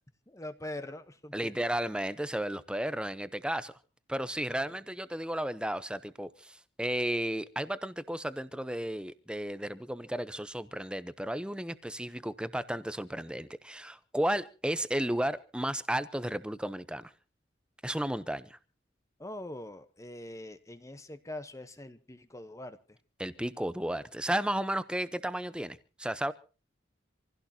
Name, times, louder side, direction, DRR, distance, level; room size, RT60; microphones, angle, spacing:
voice 1, 0.3-1.5 4.7-4.8 19.2-23.0, left 1 dB, 15° left, 10 dB, 1.0 m, -43 dB
voice 2, 1.3-3.7 4.1-17.1 17.8-18.6 23.2-26.3, right 1 dB, 5° right, 14 dB, 0.8 m, -33 dB
26.5 x 16.0 x 2.9 m, 0.34 s
head